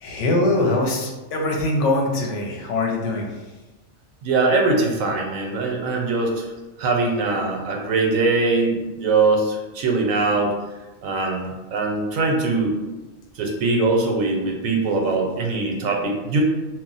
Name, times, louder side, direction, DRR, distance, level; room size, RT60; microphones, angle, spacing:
voice 1, 0.0-3.3, left 2 dB, 70° left, 0 dB, 0.8 m, -22 dB
voice 2, 4.2-6.5 6.8-10.5 11.0-12.7 13.4-16.4, right 3 dB, 85° right, 1 dB, 1.0 m, -22 dB
2.3 x 2.0 x 3.8 m, 1.1 s
omnidirectional pair, 1.4 m